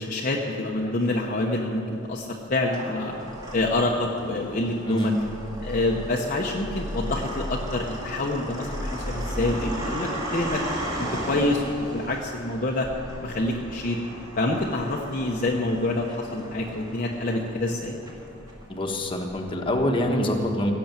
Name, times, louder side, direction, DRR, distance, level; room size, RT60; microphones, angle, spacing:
voice 1, 0.0-1.8 2.1-3.1 3.5-5.1 5.6-10.6 11.0-11.6 11.9-12.9 13.2-14.0 14.4-18.0, left 2 dB, 45° left, -1 dB, 0.9 m, -27 dB
sound 1, 0.8-1.6 2.3-20.1, equal, 20° right, 2.3 m, -35 dB
voice 2, 18.7-20.7, left 1 dB, 25° left, 1 dB, 1.3 m, -25 dB
16.0 x 7.0 x 9.0 m, 2.7 s
head